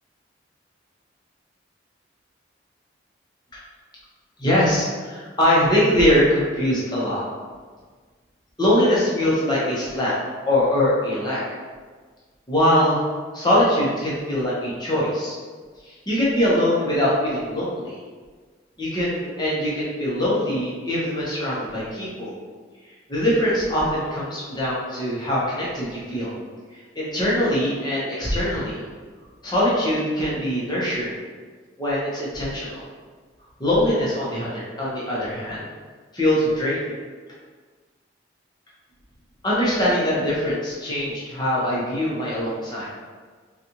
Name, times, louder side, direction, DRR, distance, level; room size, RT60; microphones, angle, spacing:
voice 1, 4.4-7.2 8.6-10.2 10.5-11.4 12.5-13.0 13.3-15.4 15.8-18.0 18.8-22.3 22.9-26.3 26.7-28.8 29.4-31.2 31.8-32.8 33.6-35.7 36.1-36.9 39.4-42.9, left 1 dB, 20° left, -7 dB, 0.8 m, -22 dB
4.0 x 2.4 x 2.9 m, 1.5 s
head